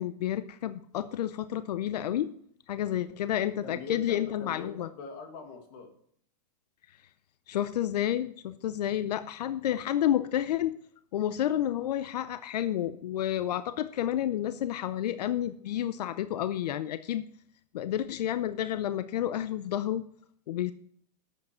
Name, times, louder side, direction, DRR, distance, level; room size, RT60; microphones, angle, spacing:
voice 1, 0.0-2.3 2.7-4.9 7.5-10.8 11.1-17.3 17.7-20.0 20.5-20.7, left 11 dB, 80° left, 13 dB, 0.6 m, -30 dB
voice 2, 3.6-5.9, left 4 dB, 35° left, 5 dB, 1.8 m, -42 dB
11.5 x 8.1 x 4.3 m, 0.63 s
supercardioid pair, 180°, 20 cm